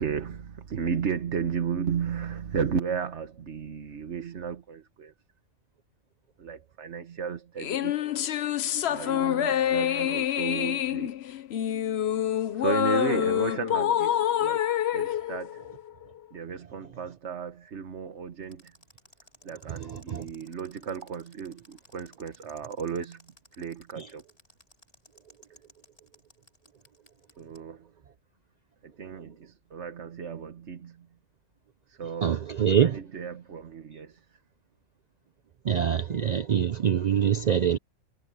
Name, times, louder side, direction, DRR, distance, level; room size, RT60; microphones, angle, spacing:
voice 1, 0.0-5.1 6.4-8.0 8.8-11.1 12.5-14.6 14.9-15.6 16.3-18.7 19.4-23.2 23.6-24.2 27.4-27.9 28.8-31.1 31.9-32.5 32.8-34.2, right 6 dB, 55° right, 1.4 m, -34 dB
sound 1, 7.6-16.2, left 11 dB, 60° left, 0.8 m, -27 dB
sound 2, 18.5-27.6, left 1 dB, 25° left, 4.3 m, -55 dB
voice 2, 19.8-20.3 24.0-24.1 32.2-33.0 35.6-37.8, right 8 dB, 80° right, 0.3 m, -25 dB
omnidirectional pair, 1.4 m